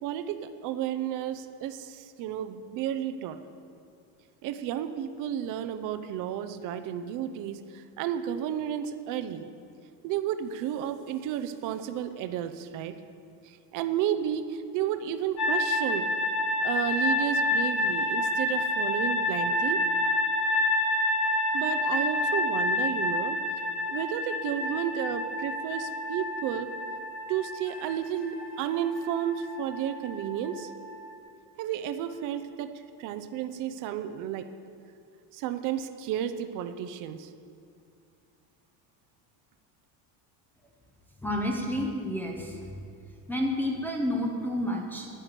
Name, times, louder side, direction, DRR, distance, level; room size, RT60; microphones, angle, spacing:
voice 1, 0.0-3.4 4.4-9.5 10.0-13.0 13.5-16.1 16.6-19.8 21.5-23.4 23.9-26.7 27.3-30.7 31.6-32.7 33.0-34.4 35.3-37.3, right 10 dB, 45° right, 9 dB, 0.7 m, -32 dB
sound 1, 15.4-31.1, left 1 dB, 35° left, 1.5 m, -29 dB
voice 2, 41.2-42.9 43.3-45.1, left 1 dB, 5° left, -1 dB, 0.7 m, -30 dB
9.9 x 9.6 x 7.4 m, 2.3 s
cardioid pair, 175°, 45 cm